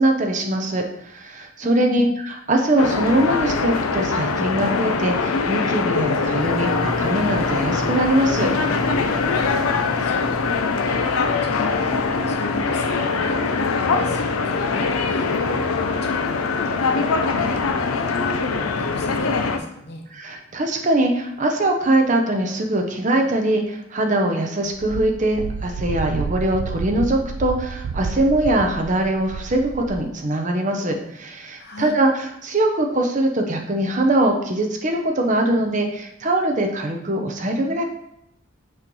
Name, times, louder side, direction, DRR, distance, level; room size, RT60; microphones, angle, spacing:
voice 1, 0.0-8.5 20.1-37.8, right 1 dB, 35° right, 3 dB, 0.7 m, -22 dB
voice 2, 1.6-2.1 9.4-15.3 15.6-20.0 31.6-32.0, left 2 dB, 50° left, 2 dB, 1.0 m, -36 dB
sound 1, 2.8-19.6, left 4 dB, 90° left, 0.6 m, -22 dB
sound 2, 6.4-14.0, left 1 dB, 5° left, 0.5 m, -36 dB
Wind, 24.7-30.1, right 5 dB, 85° right, 0.4 m, -30 dB
6.3 x 3.1 x 5.3 m, 0.78 s
head